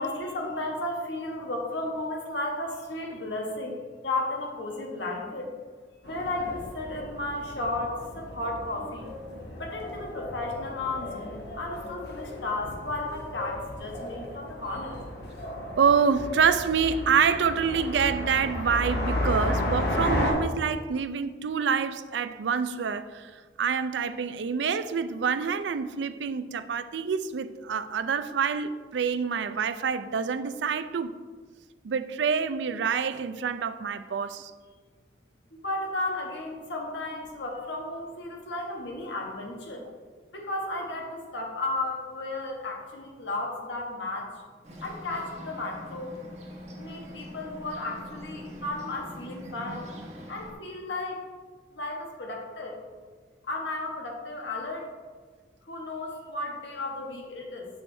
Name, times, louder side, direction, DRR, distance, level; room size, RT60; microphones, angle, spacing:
voice 1, 0.0-3.8 4.0-5.5 6.1-9.1 9.6-15.0 35.5-39.8 40.3-44.3 44.8-46.2 46.8-49.9 50.3-51.2 51.7-52.8 53.5-54.9 55.7-57.7, left 2 dB, 85° left, 1.4 m, -34 dB
sound 1, 6.0-20.3, left 1 dB, 70° left, 1.4 m, -34 dB
voice 2, 15.8-31.1 31.8-34.5, right 6 dB, 80° right, 0.4 m, -27 dB
Bird, 44.6-50.5, equal, 35° right, 1.1 m, -43 dB
7.7 x 6.3 x 3.3 m
head